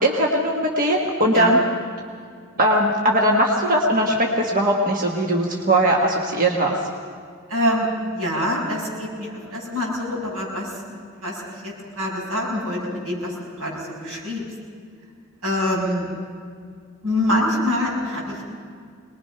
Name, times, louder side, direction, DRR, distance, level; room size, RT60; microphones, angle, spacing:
voice 1, 0.0-1.6 2.6-6.8, right 1 dB, 40° right, 0 dB, 1.4 m, -19 dB
voice 2, 7.5-10.7 11.2-13.3 13.6-14.4 15.4-16.1 17.0-18.4, left 1 dB, 85° right, -4 dB, 7.1 m, -25 dB
23.5 x 20.5 x 5.8 m, 2.2 s
head